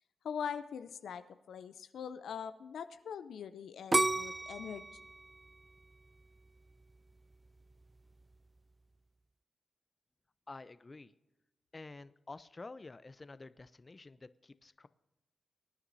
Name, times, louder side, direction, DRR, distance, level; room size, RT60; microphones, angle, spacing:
voice 1, 0.2-4.9, left 7 dB, 80° left, 11 dB, 0.5 m, -42 dB
sound 1, 3.9-6.8 7.3-7.8, right 2 dB, 30° right, 0.3 m, -33 dB
voice 2, 10.5-11.1 11.7-14.9, left 3 dB, 35° left, 14 dB, 0.6 m, -50 dB
23.0 x 9.7 x 2.7 m, 1.0 s
supercardioid pair, 45°, 0 cm